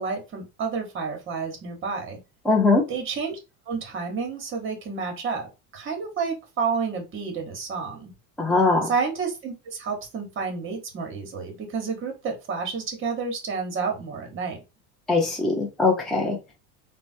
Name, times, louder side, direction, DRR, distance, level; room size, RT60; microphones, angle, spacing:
voice 1, 0.0-2.2 2.9-3.4 3.6-8.1 8.8-14.6, right 5 dB, 30° right, 3 dB, 1.1 m, -30 dB
voice 2, 2.5-2.8 8.4-8.9 15.1-16.4, left 3 dB, ahead, -1 dB, 0.5 m, -21 dB
3.2 x 2.1 x 2.5 m, 0.26 s
supercardioid pair, 130°, 38 cm